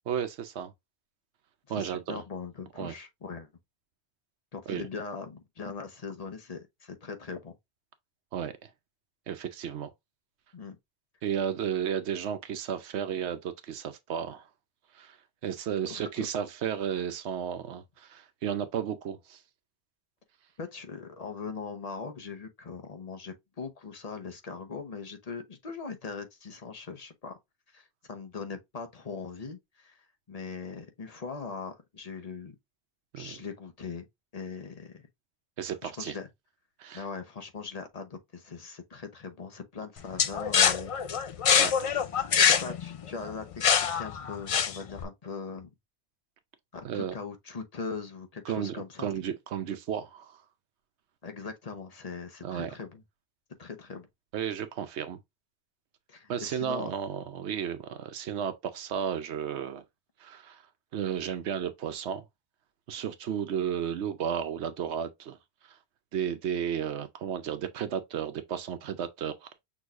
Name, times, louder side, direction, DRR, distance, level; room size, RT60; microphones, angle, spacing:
voice 1, 0.1-0.7 1.7-2.2 2.8-2.9 4.7-4.8 8.3-8.7 9.3-9.9 11.2-14.5 14.9-15.2 15.4-19.4 33.1-33.4 35.6-36.2 36.8-37.0 41.6-41.9 46.8-47.1 48.5-50.4 52.4-52.7 54.3-55.2 56.3-59.8 60.2-60.6 60.9-62.2 62.9-65.4 65.7-65.8 66.1-69.5, right 8 dB, 80° right, 0.9 m, -33 dB
voice 2, 1.7-3.5 4.5-7.6 10.5-10.8 15.8-16.3 20.6-27.4 27.7-32.5 33.2-34.1 34.3-35.0 35.8-36.3 36.9-40.9 42.3-45.7 46.7-49.1 51.2-53.0 53.6-54.1 56.1-56.9, left 5 dB, 40° left, 0.9 m, -40 dB
sound 1, 40.2-45.0, left 7 dB, 60° left, 0.3 m, -24 dB
6.2 x 3.1 x 2.4 m
omnidirectional pair, 1.1 m